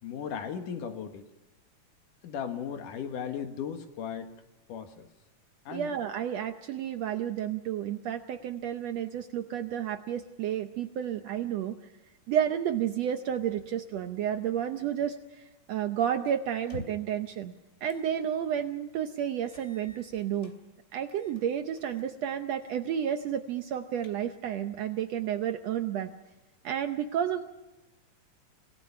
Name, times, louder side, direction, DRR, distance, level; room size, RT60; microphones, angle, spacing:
voice 1, 0.0-1.3 2.2-4.4 4.7-5.1 5.7-5.9, left 7 dB, 75° left, 6 dB, 3.1 m, -36 dB
voice 2, 5.7-11.7 12.3-17.5 17.8-20.5 20.9-26.1 26.6-27.4, right 9 dB, 70° right, 8 dB, 1.6 m, -31 dB
sound 1, 16.6-17.2 17.9-18.1 18.5-18.6 19.5-20.6 21.1-21.4 21.8-22.1 22.5-22.8 23.1-23.2 23.7-24.5, left 2 dB, 25° left, 2.5 m, -48 dB
27.0 x 17.5 x 5.8 m, 1.0 s
omnidirectional pair, 3.8 m